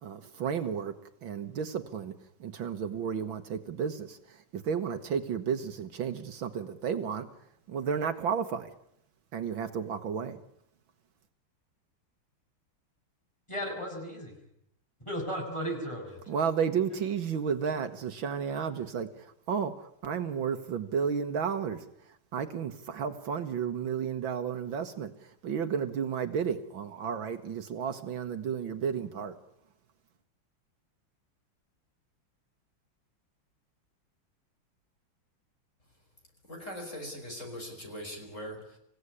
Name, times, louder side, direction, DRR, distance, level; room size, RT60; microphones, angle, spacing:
voice 1, 0.0-0.9 1.2-2.1 2.4-7.3 7.7-8.7 9.3-10.4 16.3-29.4, right 7 dB, 70° right, 8 dB, 2.0 m, -32 dB
voice 2, 13.5-14.4 15.0-16.4, equal, 15° left, 1 dB, 7.0 m, -35 dB
voice 3, 36.5-38.8, equal, 35° left, 3 dB, 5.8 m, -41 dB
27.0 x 16.5 x 9.8 m, 0.75 s
omnidirectional pair, 2.3 m